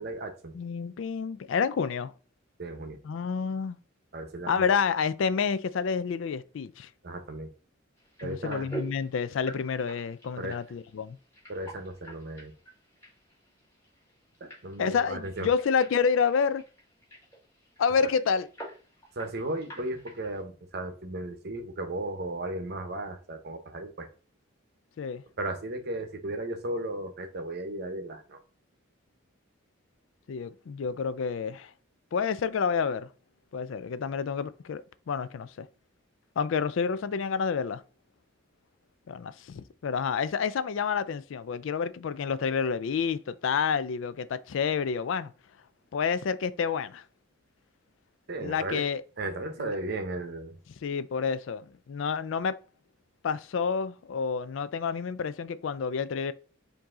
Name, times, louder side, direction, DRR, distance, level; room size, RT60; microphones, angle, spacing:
voice 1, 0.0-0.5 2.6-3.0 4.1-4.7 7.0-7.5 8.2-8.7 10.4-10.6 11.5-12.5 14.4-15.5 18.0-18.1 19.2-24.1 25.4-28.4 48.3-48.8 49.2-50.6, right 2 dB, 50° right, 0.8 m, -35 dB
voice 2, 0.5-2.1 3.0-3.8 4.5-6.9 8.2-11.2 14.8-16.6 17.8-18.5 25.0-25.2 30.3-31.7 32.1-33.1 33.5-35.7 36.4-37.8 39.1-45.3 45.9-47.0 48.4-49.0 49.6-49.8 50.8-52.6 53.2-56.3, left 6 dB, 65° left, 0.4 m, -29 dB
sound 1, 8.0-20.4, right 2 dB, 15° left, 2.1 m, -47 dB
4.7 x 2.7 x 3.7 m
head